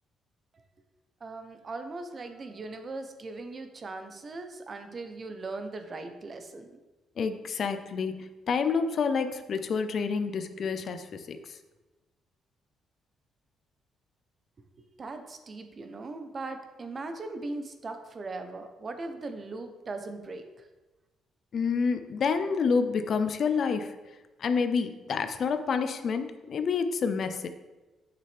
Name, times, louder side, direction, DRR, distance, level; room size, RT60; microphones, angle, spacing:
voice 1, 1.2-6.8 14.8-20.7, right 3 dB, 40° right, 7 dB, 0.9 m, -39 dB
voice 2, 7.2-11.5 21.5-23.9 24.4-27.5, left 5 dB, 55° left, 9 dB, 0.6 m, -28 dB
8.2 x 6.5 x 3.5 m, 1.2 s
cardioid pair, 90°, 0 cm